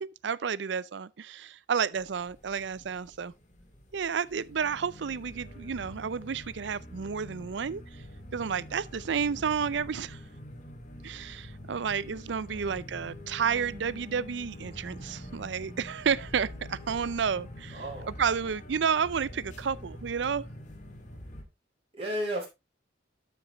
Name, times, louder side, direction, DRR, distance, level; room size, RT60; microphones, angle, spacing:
voice 1, 0.0-3.3 3.9-7.8 8.3-10.2 11.0-17.8 18.2-20.5, right 6 dB, 75° right, 0.5 m, -31 dB
sound 1, 1.9-21.4, left 1 dB, 45° left, 2.1 m, -45 dB
voice 2, 12.5-12.8 17.7-18.1 21.9-22.5, equal, 35° right, 4.5 m, -34 dB
12.0 x 6.0 x 3.0 m
head